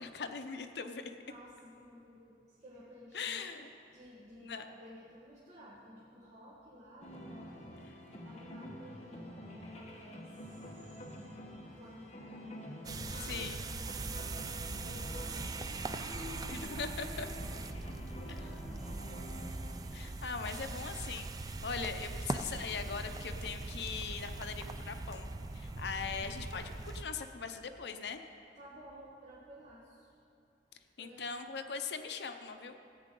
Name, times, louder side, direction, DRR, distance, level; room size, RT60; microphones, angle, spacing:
voice 1, 0.0-1.1 3.1-3.7 4.4-4.7 7.9-8.0 13.2-13.6 16.5-17.3 18.3-18.4 19.9-25.3 25.5-28.2 31.0-32.8, left 5 dB, 75° left, 7 dB, 0.7 m, -40 dB
voice 2, 1.0-3.4 3.9-7.8 8.2-11.2 11.7-14.2 14.7-17.2 17.6-19.8 28.5-30.1 30.7-31.3, equal, 40° right, -8 dB, 1.4 m, -54 dB
sound 1, 7.0-26.9, equal, 35° left, 1.2 m, -49 dB
sound 2, 12.8-27.0, right 3 dB, 20° right, 0.3 m, -41 dB
14.5 x 9.0 x 3.8 m, 2.5 s
head